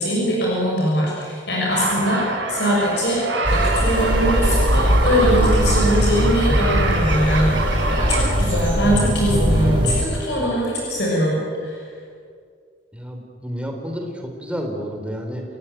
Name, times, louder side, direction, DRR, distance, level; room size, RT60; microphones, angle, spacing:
voice 1, 0.0-11.8, equal, 60° left, -3 dB, 6.5 m, -22 dB
sound 1, 1.7-8.3, right 3 dB, 75° right, 5.0 m, -25 dB
sound 2, 3.4-10.0, equal, 25° right, 5.1 m, -20 dB
voice 2, 12.9-15.4, equal, 5° right, 2 dB, 3.6 m, -30 dB
30.0 x 16.5 x 9.2 m, 2.1 s
head